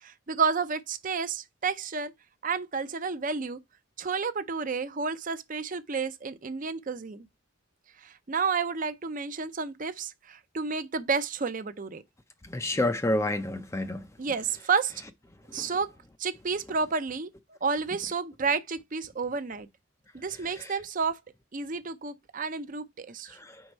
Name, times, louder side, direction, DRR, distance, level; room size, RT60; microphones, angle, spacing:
voice 1, 0.0-2.1 2.4-3.6 4.0-7.3 8.0-12.0 14.2-14.9 15.5-15.9 16.2-19.7 20.1-21.2 21.5-23.4, right 5 dB, 40° right, 0.6 m, -31 dB
voice 2, 12.4-14.1 15.5-15.7 20.6-20.7 23.3-23.6, left 1 dB, 15° left, 0.5 m, -29 dB
4.7 x 4.2 x 5.4 m
head